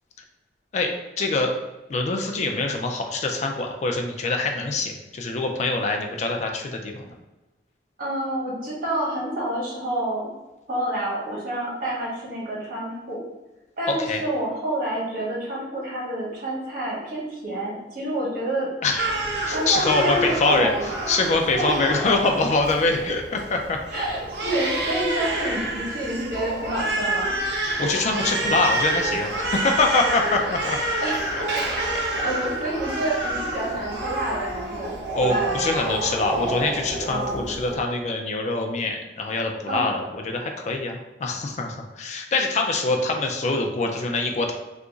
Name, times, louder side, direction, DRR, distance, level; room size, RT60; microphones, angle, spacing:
voice 1, 1.2-1.5 1.9-7.2 13.9-14.2 18.8-19.1 19.5-23.8 27.8-30.8 31.9-32.0 35.1-44.5, left 3 dB, 40° left, 3 dB, 0.3 m, -24 dB
voice 2, 8.0-10.3 10.7-13.2 13.8-18.7 19.4-20.9 21.6-21.9 23.9-27.3 31.0-31.4 31.7-31.8 32.2-35.7 37.0-37.5 39.6-39.9, right 1 dB, 55° right, -5 dB, 1.2 m, -28 dB
Crying sobbing, 19.0-37.8, right 1 dB, 80° right, 0.8 m, -28 dB
2.9 x 2.4 x 3.7 m, 1.0 s
head